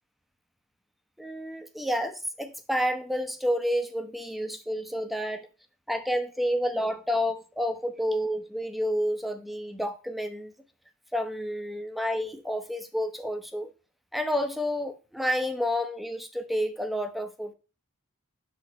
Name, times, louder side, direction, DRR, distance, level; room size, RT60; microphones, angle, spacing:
voice 1, 1.2-5.5 5.9-10.5 11.1-13.7 14.1-17.5, equal, ahead, 0.8 m, -30 dB
6.1 x 3.5 x 5.2 m
head